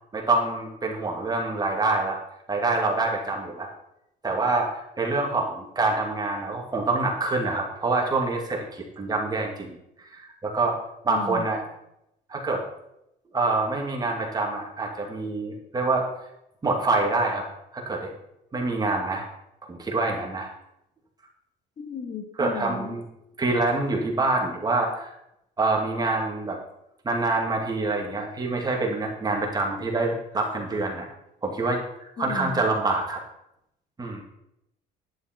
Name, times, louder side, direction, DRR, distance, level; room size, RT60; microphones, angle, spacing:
voice 1, 0.1-2.2 2.5-3.7 4.2-10.8 11.0-11.6 12.3-12.6 13.3-16.1 16.6-17.5 17.7-18.1 18.5-19.3 19.7-20.5 22.3-23.0 23.4-25.1 25.6-26.6 27.0-31.1 31.4-33.2 34.0-34.2, right 3 dB, 25° right, 0 dB, 2.4 m, -26 dB
voice 2, 11.1-11.5 21.8-22.9 32.2-32.6, left 4 dB, 45° left, 2 dB, 2.7 m, -34 dB
11.0 x 10.0 x 4.5 m, 0.82 s
cardioid pair, 110°, 17 cm